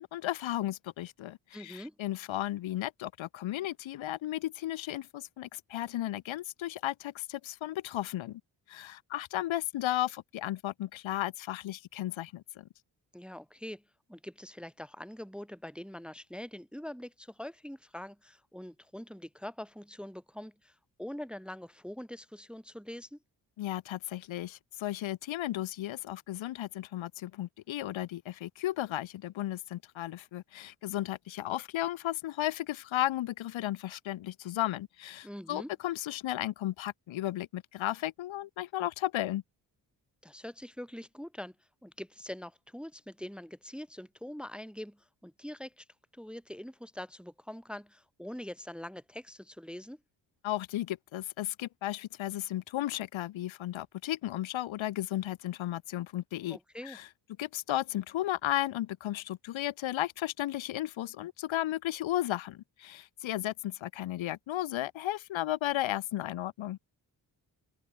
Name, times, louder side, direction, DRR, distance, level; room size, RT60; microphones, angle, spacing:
voice 1, 0.0-8.4 8.7-12.7 23.6-39.4 50.4-56.6 56.8-57.1 57.4-66.8, left 14 dB, 75° left, 1.1 m, -34 dB
voice 2, 1.5-1.9 13.1-13.8 14.1-23.2 35.2-35.7 40.2-41.5 41.8-45.9 46.1-50.0 56.5-57.0, left 1 dB, ahead, 0.8 m, -44 dB
open air
supercardioid pair, 55°, 46 cm